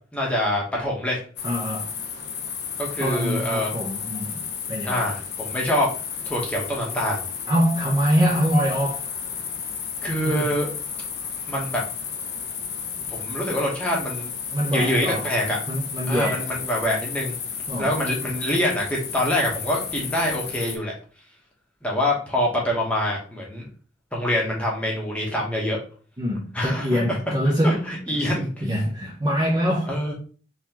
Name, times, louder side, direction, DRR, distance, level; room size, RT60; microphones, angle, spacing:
voice 1, 0.1-1.2 2.8-3.7 4.8-5.9 6.2-7.2 10.0-10.7 11.5-11.8 13.0-14.3 14.7-15.6 16.1-17.3 17.8-20.9 21.8-23.7 24.1-25.8 26.5-27.2 27.6-28.5 29.9-30.1, left 1 dB, 5° left, 0.9 m, -25 dB
sound 1, 1.4-20.8, left 7 dB, 60° left, 0.6 m, -33 dB
voice 2, 1.4-1.9 3.0-5.1 7.5-9.0 10.2-10.5 14.5-15.3 15.7-16.5 17.7-17.9 26.2-27.8 28.1-28.3 28.6-29.9, equal, 20° right, 0.6 m, -24 dB
3.9 x 2.9 x 2.8 m
head